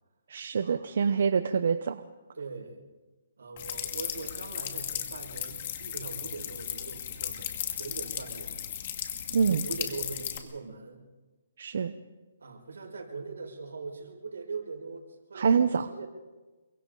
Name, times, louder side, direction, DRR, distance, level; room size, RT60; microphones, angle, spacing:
voice 1, 0.3-2.0 9.3-9.6 11.6-11.9 15.3-15.9, right 6 dB, 60° right, 10 dB, 0.9 m, -26 dB
voice 2, 2.3-2.8 3.4-8.7 9.4-11.0 12.4-16.1, right 4 dB, 90° right, 1 dB, 6.1 m, -41 dB
sound 1, 3.6-10.4, left 10 dB, 40° left, 2.2 m, -36 dB
28.0 x 24.0 x 4.0 m, 1.2 s
hypercardioid pair, 165°, 0 cm